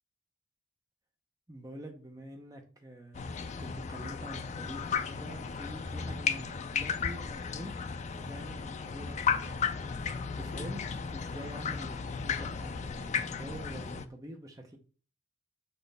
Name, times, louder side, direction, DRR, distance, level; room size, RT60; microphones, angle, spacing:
voice 1, 1.5-3.3 3.6-7.7 8.2-9.7 10.1-10.8 11.1-14.8, right 1 dB, 15° right, 3 dB, 0.7 m, -46 dB
sound 1, 3.1-14.1, left 6 dB, 35° left, 0.3 m, -35 dB
6.7 x 4.2 x 3.4 m, 0.39 s
head